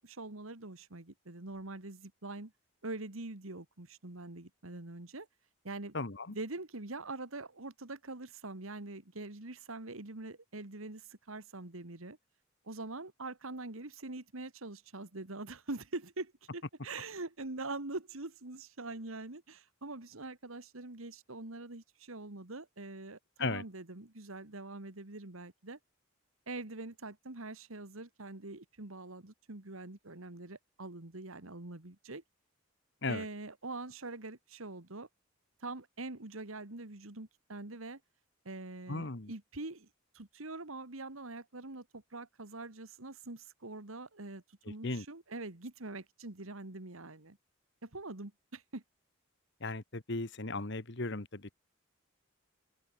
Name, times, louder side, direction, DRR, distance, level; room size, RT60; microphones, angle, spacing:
voice 1, 0.0-2.5 2.8-5.3 5.6-6.0 6.3-12.2 12.6-25.8 26.5-32.2 33.1-35.1 35.6-38.0 38.5-39.9 40.1-47.4 47.8-48.8, right 2 dB, 80° right, 2.1 m, -44 dB
voice 2, 5.9-6.4 23.4-23.6 33.0-33.2 38.9-39.3 44.8-45.1 49.6-51.6, left 3 dB, 55° left, 1.6 m, -36 dB
open air
head